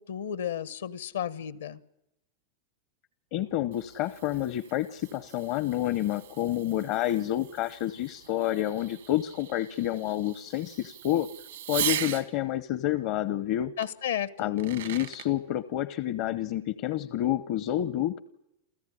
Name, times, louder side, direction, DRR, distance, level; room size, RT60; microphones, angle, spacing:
voice 1, 0.0-1.8 13.8-14.6, left 9 dB, 80° left, 1.2 m, -33 dB
voice 2, 3.3-11.3 11.7-13.7 14.4-18.2, left 13 dB, 55° left, 0.8 m, -29 dB
Fireworks, 3.4-12.3 13.8-13.9 14.4-15.3, right 11 dB, 80° right, 2.2 m, -39 dB
28.5 x 14.5 x 9.9 m
hypercardioid pair, 100°, 0 cm